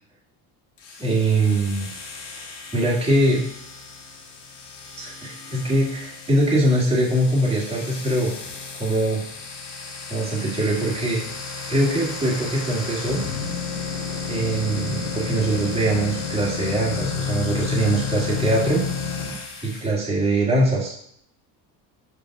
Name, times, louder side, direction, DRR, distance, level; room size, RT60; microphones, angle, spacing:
sound 1, 0.8-19.9, left 5 dB, 75° left, 1.8 m, -32 dB
voice 1, 1.0-1.9 2.7-3.4 5.0-8.3 8.8-9.2 10.1-11.2 11.7-13.2 14.3-18.8 19.6-20.9, right 1 dB, 15° right, -5 dB, 1.9 m, -22 dB
5.1 x 4.8 x 5.9 m, 0.65 s
cardioid pair, 150°, 41 cm